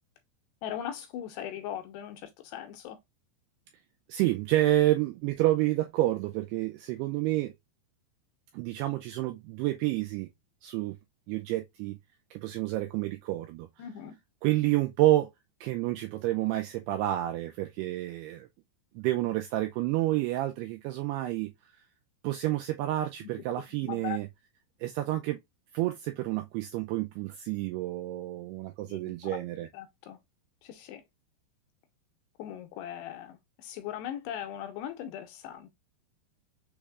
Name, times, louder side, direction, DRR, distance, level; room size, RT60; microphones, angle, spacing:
voice 1, 0.6-3.0 13.8-14.2 23.2-23.3 23.8-24.2 28.9-29.1 29.7-30.2 30.6-31.0 32.4-35.7, left 10 dB, 80° left, 2.6 m, -39 dB
voice 2, 4.1-7.5 8.5-10.3 10.6-11.0 11.3-12.0 12.3-13.7 14.4-15.3 15.6-18.5 19.0-21.5 22.2-24.3 24.8-25.4 25.7-29.7, right 16 dB, 85° right, 2.3 m, -29 dB
6.3 x 3.4 x 2.3 m
omnidirectional pair, 5.1 m